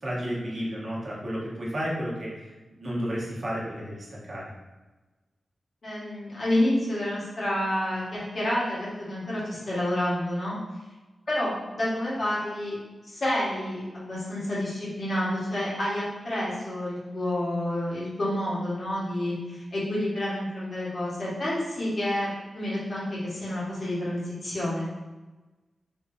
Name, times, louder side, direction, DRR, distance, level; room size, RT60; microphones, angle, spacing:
voice 1, 0.0-4.4, equal, 40° right, -6 dB, 1.0 m, -32 dB
voice 2, 5.8-10.5 11.3-12.8 13.0-24.9, left 1 dB, 45° left, -8 dB, 1.4 m, -29 dB
3.7 x 2.7 x 2.6 m, 1.2 s
wide cardioid pair, 115°, 0 cm